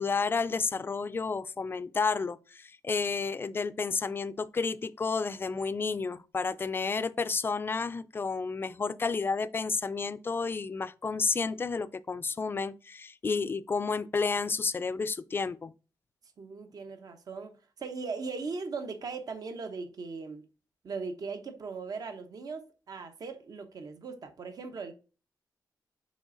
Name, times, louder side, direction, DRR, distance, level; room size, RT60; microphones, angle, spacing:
voice 1, 0.0-15.7, left 4 dB, 30° left, 0.4 m, -31 dB
voice 2, 16.4-20.4 20.8-24.9, right 4 dB, 60° right, 1.0 m, -39 dB
6.2 x 4.2 x 3.9 m
wide cardioid pair, 130°, 7 cm